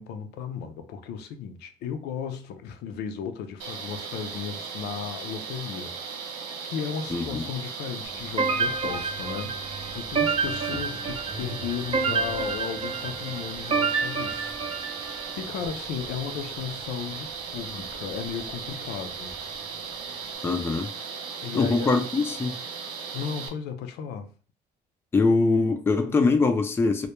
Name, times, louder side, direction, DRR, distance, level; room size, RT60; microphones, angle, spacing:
voice 1, 0.0-19.4 21.4-21.9 23.1-24.3, left 7 dB, 80° left, 0.4 m, -35 dB
sound 1, 3.6-23.5, right 5 dB, 75° right, 0.6 m, -37 dB
voice 2, 7.1-7.4 20.4-20.9 21.5-22.5 25.1-27.1, left 3 dB, 15° left, 0.3 m, -23 dB
Truck, 8.0-20.4, right 2 dB, 5° right, 0.7 m, -46 dB
sound 2, 8.4-15.3, right 4 dB, 35° right, 0.5 m, -29 dB
2.2 x 2.1 x 2.9 m
cardioid pair, 110°, 17 cm